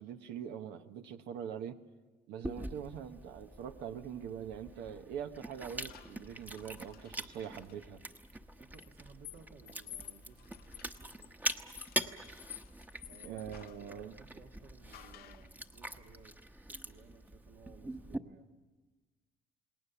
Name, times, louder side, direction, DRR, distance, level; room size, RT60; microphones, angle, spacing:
voice 1, 0.0-1.8 2.3-8.0 13.2-14.1, right 8 dB, 90° right, 7 dB, 1.2 m, -43 dB
Chewing mastication, 2.4-18.2, right 1 dB, 10° right, 1.0 m, -44 dB
sound 1, 5.9-7.8 8.7-13.9 14.9-15.5, left 13 dB, 65° left, 0.7 m, -53 dB
voice 2, 8.6-11.6 13.1-13.4 13.8-16.4 16.7-18.5, right 6 dB, 70° right, 4 dB, 1.8 m, -58 dB
29.0 x 19.5 x 7.1 m, 1.3 s
cardioid pair, 110°, 17 cm